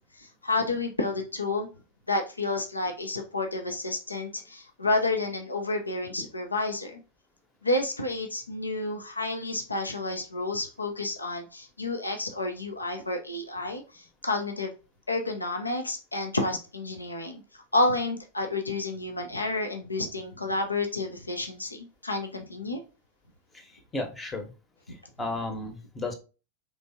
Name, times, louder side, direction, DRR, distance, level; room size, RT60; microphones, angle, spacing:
voice 1, 0.1-1.7 2.1-7.0 7.6-14.7 15.1-17.4 17.7-22.8 24.9-25.0, left 2 dB, 80° left, 0.7 m, -30 dB
voice 2, 23.5-24.5 24.9-26.1, left 2 dB, 15° left, 0.9 m, -34 dB
4.5 x 3.4 x 2.8 m
figure-of-eight pair, 90°, 0 cm